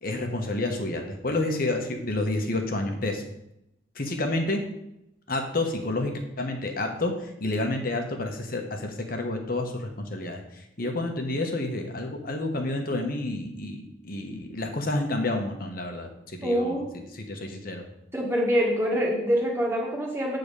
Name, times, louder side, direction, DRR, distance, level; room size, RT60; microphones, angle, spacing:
voice 1, 0.0-3.2 3.9-4.6 5.3-16.8 17.1-17.8, left 2 dB, 45° left, 3 dB, 1.2 m, -29 dB
voice 2, 16.4-17.0 18.1-20.4, equal, 15° right, -2 dB, 1.8 m, -25 dB
9.2 x 3.9 x 6.7 m, 0.84 s
head